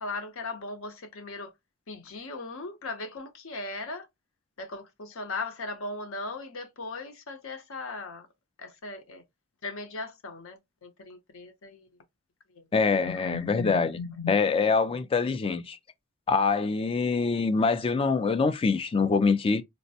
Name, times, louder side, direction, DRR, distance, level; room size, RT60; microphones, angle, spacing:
voice 1, 0.0-1.5 1.9-4.1 4.6-8.3 8.6-9.2 9.6-11.9 12.5-12.7 12.9-14.3, left 3 dB, 65° left, 0.8 m, -38 dB
voice 2, 12.7-14.0 14.3-15.8 16.3-19.6, left 4 dB, 25° left, 0.3 m, -24 dB
4.2 x 2.1 x 2.7 m
head